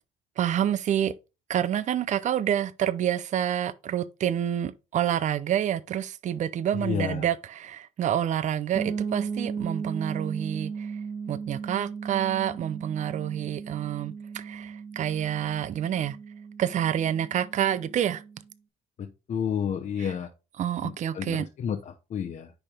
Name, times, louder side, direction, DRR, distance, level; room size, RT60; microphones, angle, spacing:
voice 1, 0.4-1.1 1.5-11.0 11.3-16.2 16.6-18.2 20.0-20.1 20.6-21.5, right 10 dB, 45° right, 0.5 m, -28 dB
voice 2, 6.7-7.3 19.0-20.3 20.8-22.5, left 8 dB, 45° left, 0.8 m, -31 dB
sound 1, 8.7-18.4, right 5 dB, 30° right, 1.2 m, -36 dB
9.9 x 3.5 x 3.6 m
cardioid pair, 110°, 17 cm